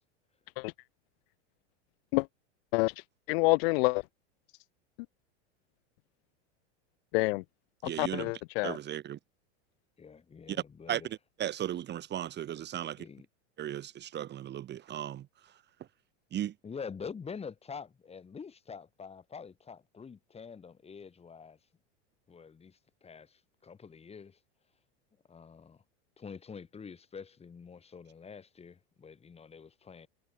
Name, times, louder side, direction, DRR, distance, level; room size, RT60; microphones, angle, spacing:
voice 1, 3.3-4.0 7.1-7.4 8.0-8.8, left 27 dB, 60° left, 0.8 m, -27 dB
voice 2, 7.8-8.3 8.6-9.2 10.5-10.6 10.9-13.1 13.6-15.3 16.3-16.5, right 11 dB, 30° right, 2.1 m, -36 dB
voice 3, 10.0-11.1 13.0-13.3 16.6-21.6 22.3-24.4 25.3-25.8 26.2-30.1, left 6 dB, 15° left, 5.0 m, -46 dB
supercardioid pair, 130°, 35 cm